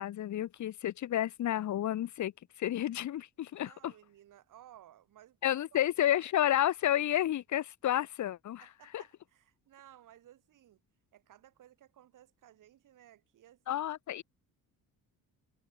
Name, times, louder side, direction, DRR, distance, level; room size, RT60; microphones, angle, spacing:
voice 1, 0.0-2.3 2.6-3.9 5.4-8.7 8.9-9.0 13.7-14.2, left 12 dB, 55° left, 1.6 m, -31 dB
voice 2, 3.6-5.4 5.7-5.9 8.6-10.8 11.1-13.9, right 12 dB, 65° right, 7.5 m, -58 dB
cardioid pair, 155°, 34 cm